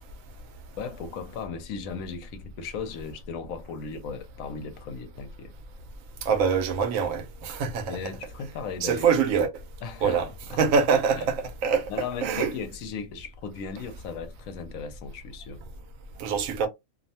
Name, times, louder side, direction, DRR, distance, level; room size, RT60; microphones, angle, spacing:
voice 1, 0.8-5.5 7.9-9.1 9.8-10.2 10.5-10.6 11.2-11.3 11.9-15.6, left 5 dB, 85° left, 1.0 m, -37 dB
voice 2, 6.2-8.0 8.8-9.5 10.0-10.3 10.6-11.9 12.2-12.5 16.2-16.7, right 6 dB, 85° right, 1.0 m, -24 dB
2.7 x 2.1 x 2.7 m
omnidirectional pair, 1.4 m